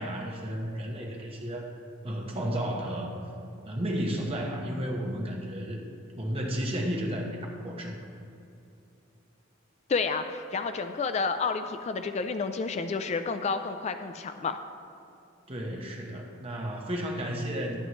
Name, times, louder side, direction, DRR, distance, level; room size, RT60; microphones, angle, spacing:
voice 1, 0.0-1.8 2.0-3.1 3.6-5.9 6.2-7.4 7.6-8.0 15.5-17.8, equal, 30° right, 0 dB, 1.1 m, -32 dB
voice 2, 9.9-14.6, left 4 dB, 35° left, 9 dB, 0.3 m, -30 dB
11.0 x 10.5 x 3.1 m, 2.6 s
head